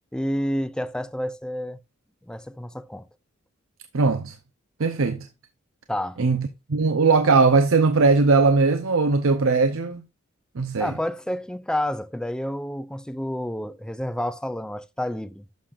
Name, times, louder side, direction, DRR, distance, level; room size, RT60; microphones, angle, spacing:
voice 1, 0.1-1.8 2.2-3.1 5.9-6.2 10.8-15.4, left 1 dB, 5° left, 0.4 m, -29 dB
voice 2, 3.9-4.3 4.8-5.2 6.2-10.0 10.6-10.9, right 4 dB, 75° right, 0.7 m, -19 dB
11.5 x 6.7 x 2.5 m
head